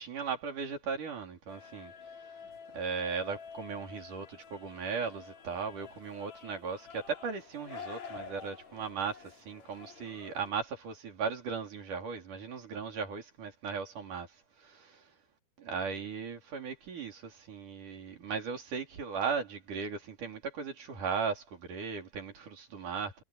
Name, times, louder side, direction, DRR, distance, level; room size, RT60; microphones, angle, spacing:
voice 1, 0.0-1.9 2.7-14.3 14.6-15.0 15.7-23.2, right 5 dB, 80° right, 5.3 m, -37 dB
sound 1, 1.5-10.5, left 6 dB, 60° left, 4.6 m, -49 dB
omnidirectional pair, 3.6 m